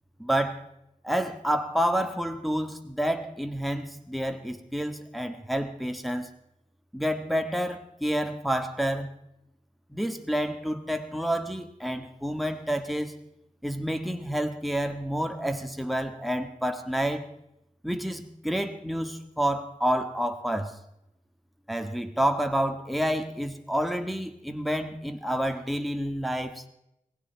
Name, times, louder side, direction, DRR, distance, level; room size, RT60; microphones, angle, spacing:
voice 1, 0.2-0.6 1.0-6.3 6.9-9.1 9.9-13.1 13.6-17.2 17.8-20.8 21.7-26.6, equal, ahead, 6 dB, 1.6 m, -29 dB
18.5 x 16.0 x 4.6 m, 0.81 s
wide cardioid pair, 75°, 14 cm